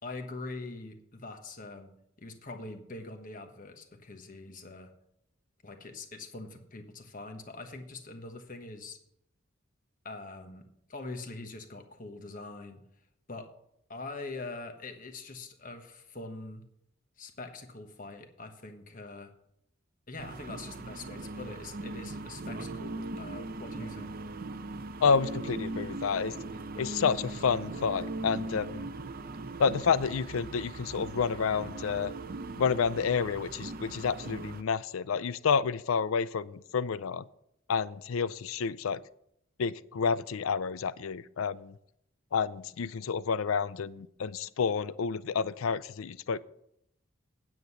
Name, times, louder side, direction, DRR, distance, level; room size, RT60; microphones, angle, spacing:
voice 1, 0.0-1.9 2.2-4.9 5.6-9.0 10.0-12.8 13.3-13.5 13.9-16.6 17.2-19.3 20.1-24.2, left 3 dB, 40° left, 6 dB, 1.2 m, -43 dB
sound 1, 20.2-34.6, right 2 dB, 45° right, 0.6 m, -39 dB
voice 2, 25.0-26.3 26.8-28.9 29.6-32.1 32.6-37.3 37.7-39.0 39.6-41.8 42.3-46.4, left 6 dB, 80° left, 18 dB, 0.4 m, -29 dB
9.3 x 8.0 x 5.6 m, 0.76 s
head